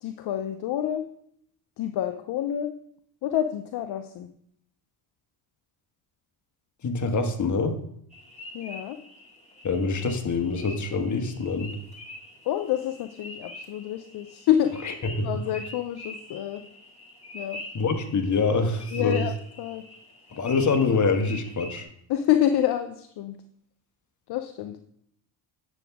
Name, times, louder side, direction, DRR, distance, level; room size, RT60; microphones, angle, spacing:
voice 1, 0.0-1.0 1.8-2.7 3.2-4.3 8.5-9.0 12.5-14.9 15.2-16.6 17.3-17.6 18.9-19.8 22.1-23.4 24.3-24.8, left 11 dB, 60° left, 8 dB, 0.7 m, -27 dB
voice 2, 6.8-7.8 9.6-11.7 15.2-15.3 17.7-19.3 20.3-21.9, left 4 dB, 40° left, 6 dB, 1.3 m, -25 dB
sound 1, 8.1-21.8, left 1 dB, 15° left, 2.3 m, -44 dB
9.1 x 7.0 x 3.5 m, 0.69 s
supercardioid pair, 75°, 45 cm